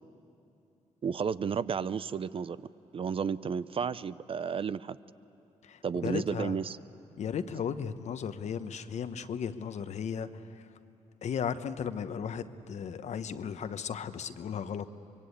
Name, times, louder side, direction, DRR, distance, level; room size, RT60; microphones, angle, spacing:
voice 1, 1.0-2.6 2.9-5.0 5.8-6.8, right 6 dB, 45° right, 16 dB, 0.5 m, -32 dB
voice 2, 5.6-6.6 7.2-10.7 11.2-15.0, left 7 dB, 65° left, 11 dB, 1.0 m, -35 dB
24.5 x 22.5 x 8.5 m, 2.8 s
cardioid pair, 75°, 13 cm